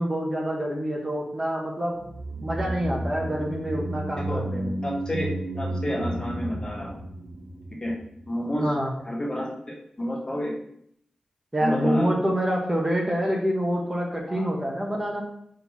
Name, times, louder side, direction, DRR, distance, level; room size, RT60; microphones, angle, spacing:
voice 1, 0.0-2.0 2.4-4.7 8.6-8.9 11.5-15.2, equal, 20° right, -1 dB, 1.1 m, -27 dB
sound 1, 1.9-8.4 8.6-8.7, right 1 dB, 85° right, 1.4 m, -33 dB
voice 2, 4.8-7.0 7.8-7.9 8.3-8.7 9.0-10.5 11.6-12.1 14.3-14.5, left 1 dB, 35° left, -4 dB, 1.6 m, -29 dB
4.5 x 3.9 x 5.5 m, 0.71 s
wide cardioid pair, 100°, 2 cm